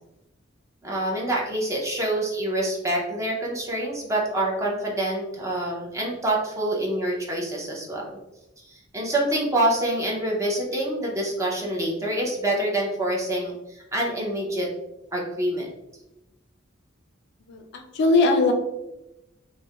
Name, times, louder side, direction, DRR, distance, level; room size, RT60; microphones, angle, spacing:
voice 1, 0.8-8.2 8.6-14.7 15.1-15.7, right 1 dB, 15° right, -2 dB, 0.5 m, -26 dB
voice 2, 17.5-18.5, left 3 dB, 60° left, 5 dB, 0.3 m, -20 dB
2.3 x 2.0 x 2.8 m, 0.94 s
head